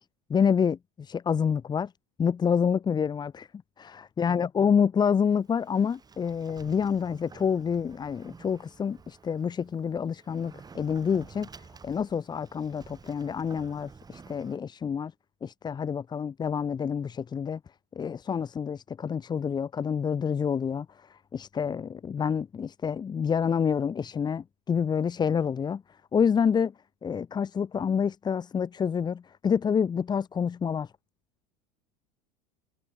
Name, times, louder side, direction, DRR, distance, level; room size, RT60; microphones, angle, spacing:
voice 1, 0.3-1.9 2.2-3.5 3.8-11.5 11.8-15.1 15.4-17.6 17.9-25.8 26.1-26.7 27.0-30.9, left 7 dB, 20° left, 0.9 m, -28 dB
Sliding door, 5.1-14.6, right 5 dB, 20° right, 3.5 m, -51 dB
figure-of-eight pair, 75°, 21 cm